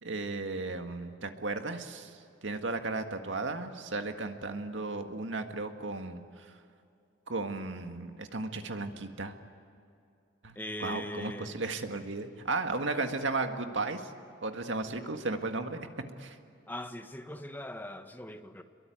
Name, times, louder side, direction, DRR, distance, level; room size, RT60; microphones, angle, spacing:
voice 1, 0.0-6.5 7.3-9.3 10.4-14.1 14.4-15.9 16.2-16.4, right 3 dB, 85° right, 1.9 m, -35 dB
voice 2, 10.5-11.5 16.7-18.6, left 1 dB, 10° left, 1.3 m, -40 dB
27.5 x 22.5 x 9.4 m
head